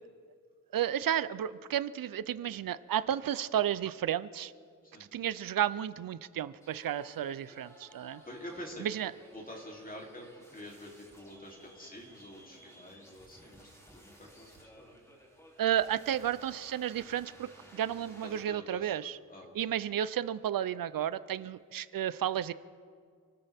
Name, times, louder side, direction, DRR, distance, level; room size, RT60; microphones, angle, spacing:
voice 1, 0.7-4.5 5.1-8.2 8.8-9.1 15.6-19.2 19.5-22.5, right 10 dB, 80° right, 16 dB, 0.6 m, -32 dB
sound 1, 6.6-18.4, equal, 10° left, 3.0 m, -57 dB
voice 2, 8.2-8.9 9.3-10.3 10.5-13.7 13.9-15.1 18.2-18.9 19.3-19.5, equal, 25° left, -1 dB, 3.2 m, -47 dB
28.5 x 13.0 x 3.5 m, 2.2 s
wide cardioid pair, 95°, 34 cm